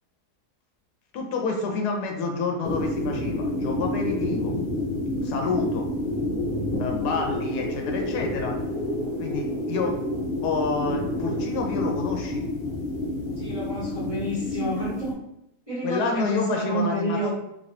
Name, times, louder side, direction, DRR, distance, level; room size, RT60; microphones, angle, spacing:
voice 1, 1.1-4.6 5.2-5.9 6.8-8.6 9.2-9.9 10.4-12.4 15.8-17.3, left 4 dB, 85° left, 2 dB, 1.1 m, -28 dB
sound 1, 2.6-15.1, left 1 dB, 50° left, 0.7 m, -29 dB
voice 2, 13.4-15.2 15.7-17.3, right 1 dB, 25° right, -9 dB, 1.1 m, -29 dB
3.1 x 2.9 x 2.7 m, 0.79 s
omnidirectional pair, 1.7 m